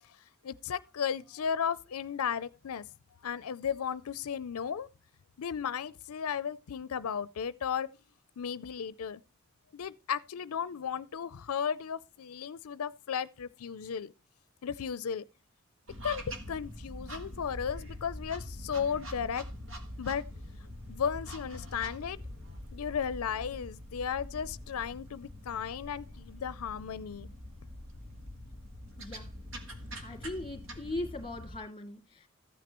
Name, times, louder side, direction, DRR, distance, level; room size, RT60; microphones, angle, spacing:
voice 1, 0.4-2.8 3.2-4.9 5.4-7.9 8.4-9.2 9.7-14.1 14.6-15.2 16.0-16.2 16.5-19.4 20.0-20.2 20.9-22.2 22.7-27.3, left 7 dB, 85° left, 0.5 m, -35 dB
sound 1, 15.9-31.6, equal, 60° right, 2.4 m, -44 dB
voice 2, 29.0-29.3 30.0-32.3, left 2 dB, 25° left, 2.4 m, -39 dB
15.0 x 9.3 x 3.0 m
head